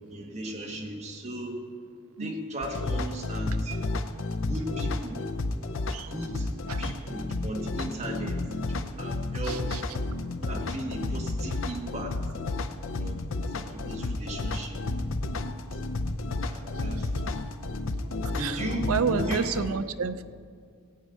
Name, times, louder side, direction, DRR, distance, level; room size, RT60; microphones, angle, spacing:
voice 1, 0.0-1.6 2.2-3.8 4.5-5.3 6.1-6.5 6.8-8.4 8.7-9.6 10.5-12.1 13.0-14.8 15.7-15.8 16.4-17.3 18.3-19.5, right 1 dB, 30° right, 0 dB, 1.6 m, -36 dB
sound 1, 2.6-19.7, left 2 dB, 60° left, 0.6 m, -31 dB
voice 2, 9.4-9.8 18.4-18.6 18.9-20.2, right 6 dB, 75° right, 12 dB, 0.5 m, -30 dB
16.0 x 5.4 x 9.2 m, 2.2 s
head